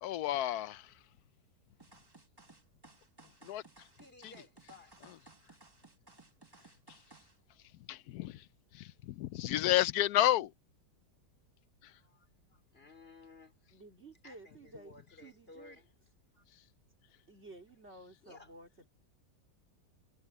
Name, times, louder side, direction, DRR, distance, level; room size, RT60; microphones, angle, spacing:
voice 1, 0.0-0.9 3.4-3.6 6.9-7.0 7.9-8.5 8.7-10.5 11.8-11.9, left 14 dB, 70° left, 1.0 m, -31 dB
sound 1, 1.8-7.4, right 3 dB, 15° right, 1.5 m, -59 dB
voice 2, 3.9-4.9 5.5-5.6 6.1-6.5 11.9-13.6 14.2-16.4 18.2-18.5, left 3 dB, 35° left, 4.1 m, -58 dB
voice 3, 13.7-15.8 17.3-18.9, right 2 dB, 40° right, 3.9 m, -54 dB
omnidirectional pair, 1.8 m